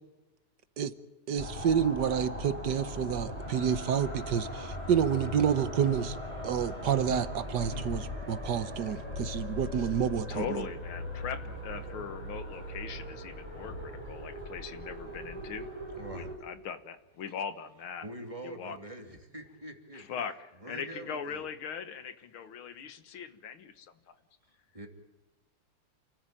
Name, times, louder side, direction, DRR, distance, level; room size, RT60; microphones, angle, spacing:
voice 1, 1.3-6.2 6.4-10.6, right 8 dB, 60° right, 12 dB, 1.4 m, -29 dB
sound 1, 1.4-16.3, left 1 dB, 15° left, 5.5 m, -39 dB
voice 2, 10.3-15.7 16.1-18.1 18.4-18.8 19.9-20.4 20.6-23.9, left 7 dB, 70° left, 11 dB, 2.1 m, -40 dB
voice 3, 16.0-16.3 18.0-20.0 20.6-21.4 24.4-24.9, right 1 dB, 15° right, 3 dB, 2.8 m, -44 dB
28.5 x 14.5 x 9.1 m, 1.1 s
omnidirectional pair, 2.4 m